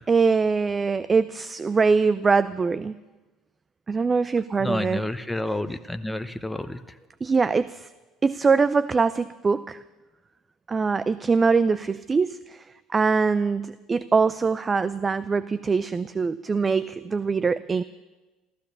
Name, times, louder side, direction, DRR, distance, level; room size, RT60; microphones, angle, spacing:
voice 1, 0.1-2.9 3.9-5.0 7.2-7.9 8.2-9.8 10.7-17.8, right 4 dB, 30° right, 15 dB, 0.5 m, -23 dB
voice 2, 4.6-7.0, left 1 dB, 5° left, 9 dB, 0.9 m, -30 dB
14.5 x 13.5 x 6.7 m, 1.2 s
hypercardioid pair, 70°, 0 cm